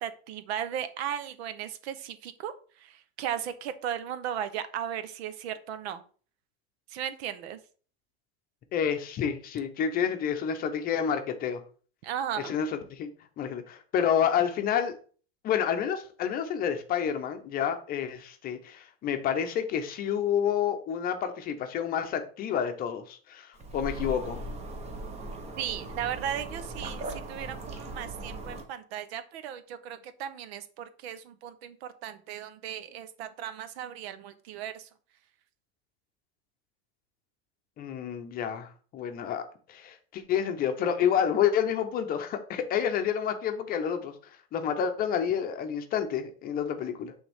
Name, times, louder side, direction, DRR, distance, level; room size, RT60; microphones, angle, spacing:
voice 1, 0.0-6.0 6.9-7.6 12.0-12.5 25.6-34.9, right 9 dB, 85° right, 12 dB, 0.9 m, -36 dB
voice 2, 8.7-11.6 12.4-13.1 13.4-14.9 15.4-24.4 37.8-44.2 44.5-47.1, left 8 dB, 30° left, 7 dB, 0.7 m, -29 dB
sound 1, 23.5-28.6, right 2 dB, 20° right, 0.8 m, -39 dB
8.8 x 3.5 x 3.5 m, 0.41 s
supercardioid pair, 160°, 31 cm